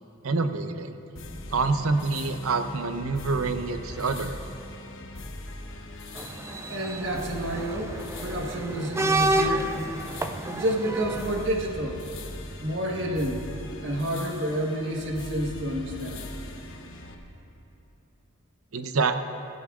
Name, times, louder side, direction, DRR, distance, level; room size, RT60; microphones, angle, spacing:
voice 1, 0.2-0.9 1.5-4.4 18.7-19.2, right 4 dB, 70° right, 9 dB, 0.6 m, -26 dB
sound 1, 1.2-17.2, left 1 dB, 60° left, 1.0 m, -40 dB
sound 2, 6.2-11.5, right 2 dB, 10° right, 0.3 m, -30 dB
voice 2, 6.7-9.7 10.5-12.0 12.6-13.4 13.8-16.3, equal, 55° right, 0 dB, 1.3 m, -29 dB
16.5 x 16.0 x 2.4 m, 2.9 s
head